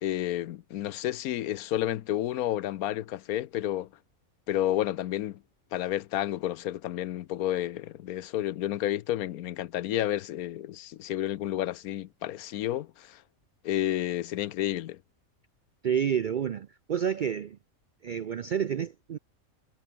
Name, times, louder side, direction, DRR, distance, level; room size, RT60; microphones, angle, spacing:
voice 1, 0.0-3.9 4.5-5.4 5.7-13.2 13.6-15.0, left 13 dB, 90° left, 1.2 m, -31 dB
voice 2, 15.8-17.6 18.0-19.2, right 8 dB, 70° right, 0.4 m, -29 dB
omnidirectional pair, 1.5 m